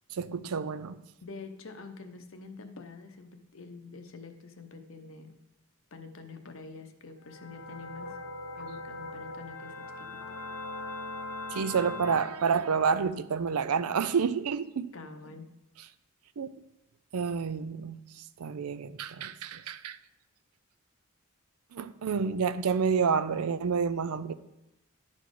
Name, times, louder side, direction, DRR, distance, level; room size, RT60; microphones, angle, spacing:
voice 1, 0.1-1.0 11.5-14.9 16.4-16.5 17.1-20.0 21.7-24.3, right 6 dB, 85° right, 0.5 m, -29 dB
voice 2, 1.2-5.4 5.9-8.2 8.6-10.1 14.9-15.5, left 4 dB, 65° left, 0.8 m, -46 dB
sound 1, 7.2-12.2, left 2 dB, 90° left, 1.5 m, -40 dB
11.0 x 4.2 x 4.7 m
head